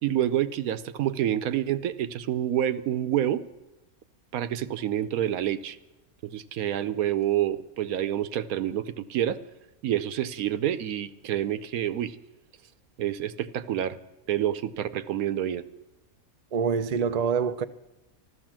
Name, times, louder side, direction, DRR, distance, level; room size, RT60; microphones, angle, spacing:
voice 1, 0.0-3.4 4.3-5.8 6.2-9.4 9.8-12.2 13.0-14.0 14.3-15.6, right 11 dB, 75° right, 1.2 m, -28 dB
voice 2, 16.5-17.6, right 6 dB, 90° right, 0.3 m, -25 dB
14.0 x 13.0 x 7.4 m
omnidirectional pair, 1.6 m